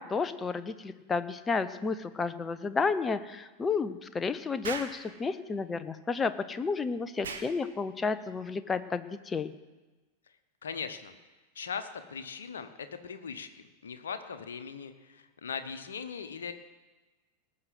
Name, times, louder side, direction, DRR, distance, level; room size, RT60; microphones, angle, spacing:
voice 1, 0.0-9.5, left 4 dB, 15° left, 11 dB, 0.8 m, -31 dB
Explosion, 4.6-5.0 7.2-7.5, right 5 dB, 65° right, 1.4 m, -37 dB
voice 2, 10.6-11.2 11.5-16.5, left 6 dB, 65° left, 8 dB, 1.1 m, -39 dB
19.0 x 6.5 x 7.7 m, 1.2 s
figure-of-eight pair, 90°, 0 cm